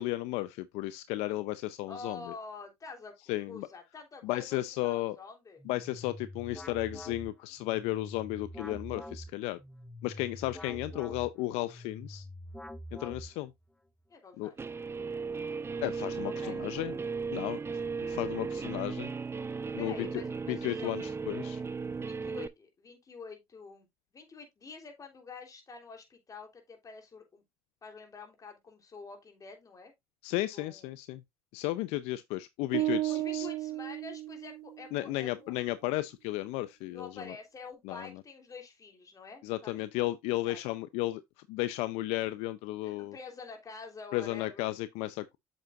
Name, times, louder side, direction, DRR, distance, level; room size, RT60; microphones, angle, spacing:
voice 1, 0.0-2.2 3.3-3.7 4.2-5.2 5.7-9.6 10.0-12.3 12.9-13.5 14.4-14.5 15.8-16.9 17.3-17.6 18.1-19.1 19.7-20.1 20.5-21.6 30.2-31.2 31.5-33.5 34.9-37.3 37.8-38.1 39.4-41.2 41.5-43.1 44.1-45.4, left 17 dB, 80° left, 0.6 m, -34 dB
voice 2, 1.9-3.1 3.5-5.6 14.1-14.7 16.2-16.7 19.8-21.2 22.0-23.9 24.1-27.4 27.8-29.9 30.5-30.9 32.8-35.5 36.9-39.9 40.4-40.6 42.8-44.7, left 4 dB, 35° left, 3.4 m, -47 dB
sound 1, 5.6-13.6, left 1 dB, 5° left, 0.8 m, -45 dB
Guitar, 14.6-22.5, right 5 dB, 25° right, 0.6 m, -36 dB
sound 2, 32.7-34.9, right 16 dB, 80° right, 0.7 m, -33 dB
8.0 x 7.4 x 2.4 m
supercardioid pair, 85°, 11 cm